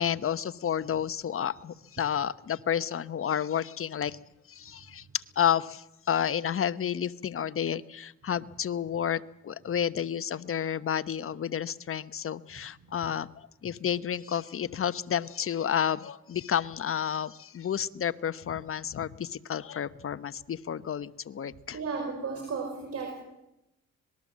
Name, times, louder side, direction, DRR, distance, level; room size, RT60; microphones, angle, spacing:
voice 1, 0.0-4.2 4.5-21.8, left 9 dB, 45° left, 14 dB, 1.0 m, -31 dB
voice 2, 21.7-23.1, right 4 dB, 55° right, 3 dB, 5.3 m, -34 dB
25.5 x 20.0 x 7.5 m, 0.87 s
cardioid pair, 90°, 30 cm